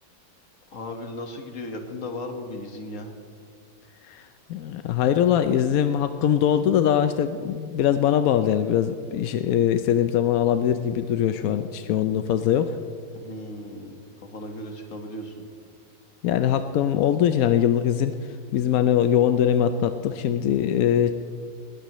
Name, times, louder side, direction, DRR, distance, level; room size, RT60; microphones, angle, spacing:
voice 1, 0.7-3.1 13.1-15.3, left 1 dB, 45° left, 4 dB, 1.7 m, -36 dB
voice 2, 4.0-12.8 16.2-21.1, left 9 dB, 70° left, 9 dB, 0.8 m, -22 dB
20.0 x 18.0 x 3.1 m, 2.1 s
omnidirectional pair, 2.0 m